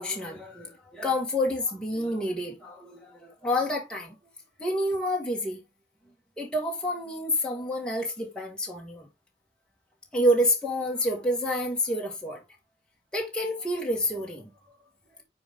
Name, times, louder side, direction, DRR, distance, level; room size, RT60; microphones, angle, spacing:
voice 1, 0.0-4.2 4.6-5.6 6.4-9.1 10.1-12.4 13.1-14.5, left 1 dB, 5° left, 1.9 m, -28 dB
9.5 x 4.0 x 3.8 m
head